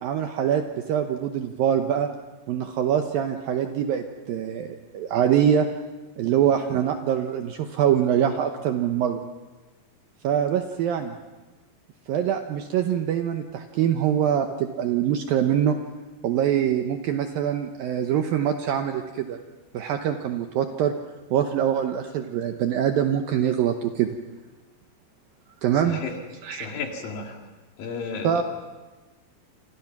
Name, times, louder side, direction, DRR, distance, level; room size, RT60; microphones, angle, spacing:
voice 1, 0.0-2.1 2.5-5.7 6.2-9.2 10.2-11.2 12.1-15.8 16.2-19.4 19.7-20.9 21.3-24.1 25.6-26.0 26.4-26.7 28.2-28.4, right 9 dB, 75° right, 6 dB, 2.2 m, -24 dB
voice 2, 26.5-27.4 27.8-28.4, left 4 dB, 55° left, 3 dB, 3.8 m, -33 dB
28.0 x 26.5 x 6.0 m, 1.2 s
omnidirectional pair, 5.1 m